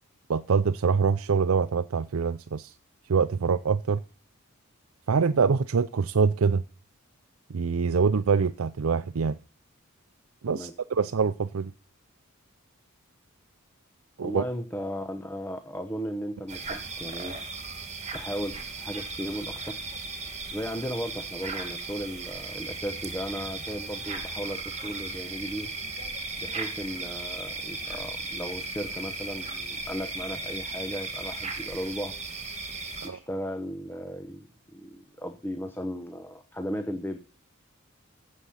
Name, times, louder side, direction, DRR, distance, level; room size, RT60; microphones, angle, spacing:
voice 1, 0.3-2.7 3.1-4.0 5.1-6.6 7.5-9.4 10.4-11.7 14.2-14.4 33.0-33.2, right 5 dB, 75° right, 0.5 m, -25 dB
voice 2, 14.2-17.4 18.1-19.8 20.5-25.7 26.4-32.1 33.0-37.2, equal, 10° left, 1.0 m, -36 dB
sound 1, 16.5-33.1, right 3 dB, 35° right, 2.5 m, -36 dB
15.0 x 7.5 x 5.6 m
head